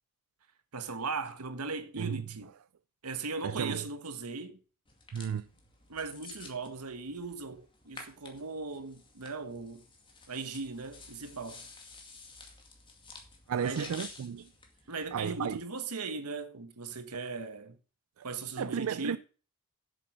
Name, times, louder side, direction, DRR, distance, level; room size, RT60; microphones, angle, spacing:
voice 1, 0.7-2.5 3.0-4.6 5.9-9.8 10.3-11.7 13.6-13.9 14.9-17.8 18.2-19.2, right 4 dB, 90° right, 1.4 m, -38 dB
voice 2, 3.4-3.8 5.1-5.5 13.5-14.5 15.1-15.6 18.2-18.3 18.6-19.2, right 7 dB, 65° right, 0.4 m, -33 dB
sound 1, 4.9-15.6, left 3 dB, 25° left, 2.2 m, -52 dB
7.8 x 7.8 x 6.3 m
head